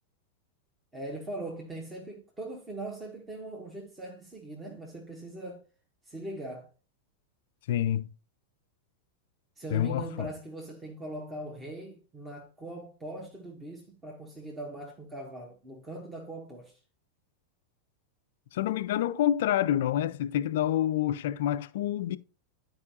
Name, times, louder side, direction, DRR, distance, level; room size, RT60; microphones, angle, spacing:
voice 1, 0.9-5.6 6.0-6.7 9.6-16.8, right 1 dB, 15° right, 1.4 m, -41 dB
voice 2, 7.7-8.1 9.7-10.3 18.5-22.2, left 11 dB, 55° left, 0.4 m, -27 dB
11.5 x 4.8 x 2.7 m
figure-of-eight pair, 90°, 0 cm